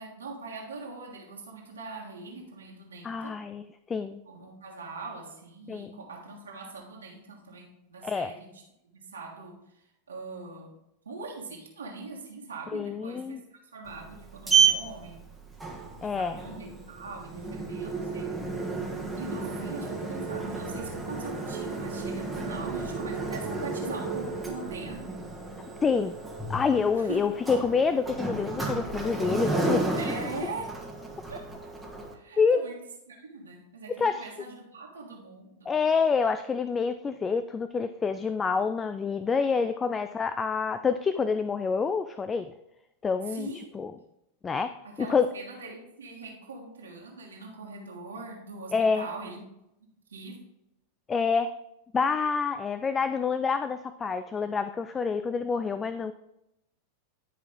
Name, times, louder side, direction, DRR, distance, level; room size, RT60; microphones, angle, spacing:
voice 1, 0.0-3.4 4.2-9.6 10.1-10.7 11.0-15.2 16.0-18.5 19.2-25.1 26.9-27.2 29.9-30.7 31.3-31.5 32.1-32.8 33.1-35.7 43.3-44.0 44.8-49.4 50.1-50.4, right 3 dB, 70° right, -2 dB, 1.6 m, -42 dB
voice 2, 3.0-4.2 5.7-5.9 8.0-8.3 12.7-13.4 16.0-16.4 25.8-26.1 26.5-30.0 32.4-32.6 34.0-34.3 35.7-42.5 43.0-43.5 43.7-43.9 44.4-45.3 48.7-49.1 51.1-51.5 51.9-56.1, left 5 dB, 20° left, 11 dB, 0.3 m, -27 dB
Sliding door, 13.9-32.1, right 4 dB, 5° right, 1.4 m, -31 dB
10.5 x 4.8 x 3.6 m, 0.85 s
figure-of-eight pair, 90°, 0 cm